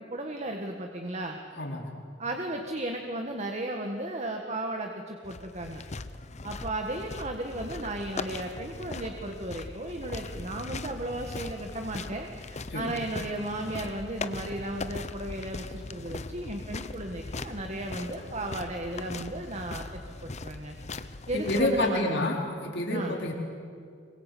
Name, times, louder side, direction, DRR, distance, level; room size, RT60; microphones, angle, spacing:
voice 1, 0.0-1.4 2.2-5.8 6.4-20.7 21.3-22.2 22.9-23.2, right 1 dB, 40° right, 3 dB, 1.7 m, -35 dB
voice 2, 1.6-1.9 12.7-12.9 21.3-22.4 22.6-23.3, left 1 dB, 65° left, 0 dB, 4.2 m, -28 dB
sound 1, 5.2-21.9, left 3 dB, 40° left, 0.8 m, -40 dB
25.5 x 23.0 x 8.5 m, 2.2 s
head